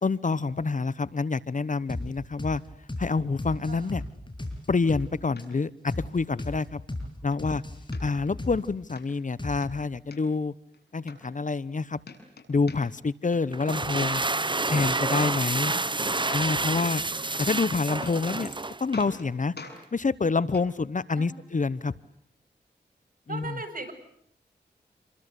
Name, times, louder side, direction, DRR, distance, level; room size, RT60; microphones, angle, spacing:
voice 1, 0.0-2.6 3.0-4.0 4.7-6.8 7.2-7.6 8.0-10.5 10.9-12.0 12.5-14.2 14.7-15.7 16.3-17.0 17.4-18.5 18.8-19.5 19.9-21.9 23.3-23.4, left 4 dB, 45° left, 18 dB, 1.1 m, -27 dB
sound 1, 1.9-2.1 2.4-2.6 2.9-3.1 3.4-5.1 5.4-5.5 5.9-6.1 6.4-6.6 6.9-7.1 7.4-8.9 9.4-9.8, left 1 dB, 25° left, 7.8 m, -35 dB
sound 2, 5.4-5.5 5.9-6.0 6.4-6.5 6.9-7.4 7.9-8.5 9.0-9.1 9.4-10.2 10.7-10.8 11.1-11.8 12.0-13.1 13.3-13.9 15.9-16.0 16.3-17.1 17.4-17.7 18.0-18.6 18.9-19.3 19.6-19.8 20.5-20.7 21.6-21.7, left 4 dB, 65° left, 7.4 m, -45 dB
voice 2, 7.0-7.4 15.6-16.1 21.1-21.3 23.3-23.9, right 3 dB, 50° right, 8 dB, 7.8 m, -40 dB
sound 3, 13.5-19.1, right 3 dB, 25° right, 1.1 m, -29 dB
28.5 x 24.0 x 8.3 m, 0.69 s
cardioid pair, 50°, 18 cm